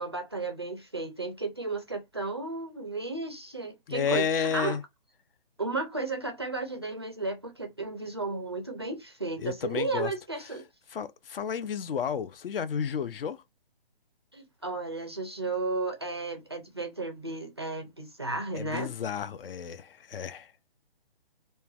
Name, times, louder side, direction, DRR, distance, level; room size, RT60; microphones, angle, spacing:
voice 1, 0.0-4.8 5.6-10.6 14.3-18.9, right 3 dB, 30° right, 0.3 m, -34 dB
voice 2, 3.9-4.8 9.4-10.1 10.9-13.4 18.5-20.5, left 7 dB, 70° left, 0.5 m, -31 dB
3.1 x 2.1 x 2.3 m
hypercardioid pair, 165°, 29 cm